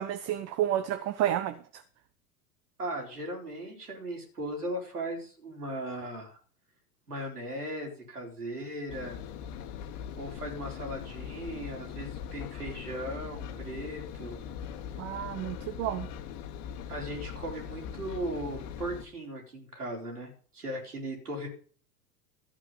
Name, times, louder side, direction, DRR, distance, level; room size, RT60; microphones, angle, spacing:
voice 1, 0.0-1.8 15.0-16.1, right 11 dB, 35° right, 10 dB, 0.9 m, -31 dB
voice 2, 2.8-6.4 7.1-9.2 10.2-14.4 16.9-21.5, right 1 dB, 85° right, 0 dB, 4.3 m, -37 dB
Engine, 8.9-19.1, left 8 dB, 45° left, 1.6 m, -41 dB
13.0 x 8.0 x 5.5 m, 0.43 s
figure-of-eight pair, 90°, 45 cm